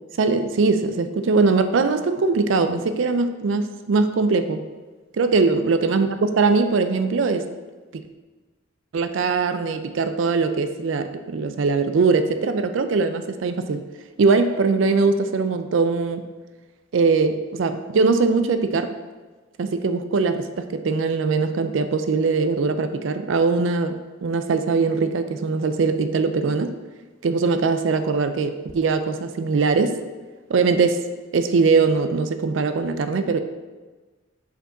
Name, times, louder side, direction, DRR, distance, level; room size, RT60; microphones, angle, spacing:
voice 1, 0.2-4.6 5.2-7.5 7.9-8.0 8.9-13.9 14.2-16.3 16.9-18.9 19.6-26.7 27.2-30.0 30.5-31.0 31.3-33.4, right 4 dB, 85° right, 10 dB, 0.4 m, -21 dB
5.2 x 5.2 x 3.7 m, 1.3 s
head